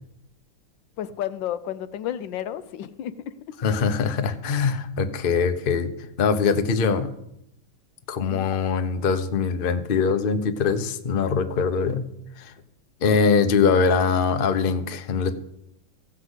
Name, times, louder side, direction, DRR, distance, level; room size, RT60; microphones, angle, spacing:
voice 1, 1.0-3.3 8.2-8.5, left 11 dB, 75° left, 14 dB, 1.3 m, -32 dB
voice 2, 3.6-7.1 8.1-12.1 12.4-12.5 13.0-15.3, left 5 dB, 45° left, 9 dB, 0.7 m, -22 dB
15.5 x 5.8 x 8.1 m, 0.80 s
omnidirectional pair, 2.1 m